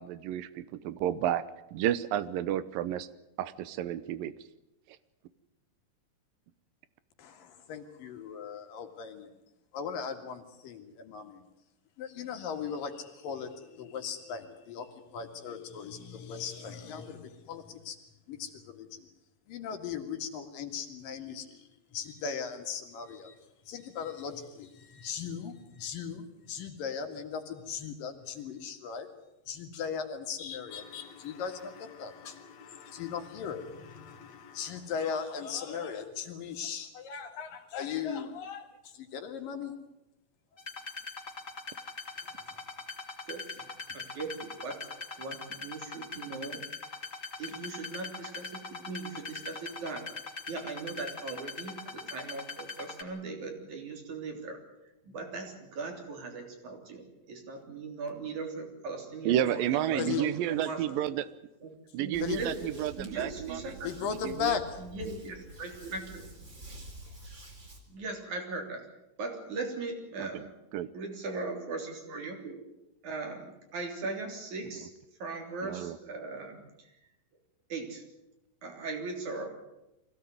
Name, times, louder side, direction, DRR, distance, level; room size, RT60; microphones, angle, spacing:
voice 1, 0.0-1.4 1.7-3.1 3.4-4.3 59.3-61.3 61.9-63.8 64.1-64.6 70.2-70.5 70.7-70.9 75.6-76.0, right 11 dB, 80° right, 16 dB, 2.6 m, -31 dB
voice 2, 7.2-9.3 9.7-11.4 12.0-14.9 15.1-18.0 18.3-19.0 19.5-21.5 21.9-23.4 23.7-29.1 29.5-31.7 32.0-32.4 32.9-33.6 34.5-38.7 39.0-39.7 60.0-60.2 62.2-62.4 63.8-64.6, left 7 dB, 75° left, 6 dB, 3.7 m, -37 dB
sound 1, 30.7-35.1, left 6 dB, 55° left, 3.1 m, -52 dB
sound 2, 40.6-53.0, left 4 dB, 25° left, 2.5 m, -41 dB
voice 3, 43.3-43.7 43.9-44.8 45.2-46.6 47.4-50.1 50.5-54.6 55.0-61.1 61.6-64.1 64.8-66.3 67.9-68.8 69.2-70.5 70.9-72.6 73.0-74.9 75.2-76.9 77.7-78.0 78.6-79.5, right 3 dB, 60° right, 3 dB, 4.8 m, -39 dB
sound 3, 62.1-67.8, right 1 dB, 35° right, 4.4 m, -48 dB
23.5 x 16.5 x 9.4 m, 0.92 s
omnidirectional pair, 4.0 m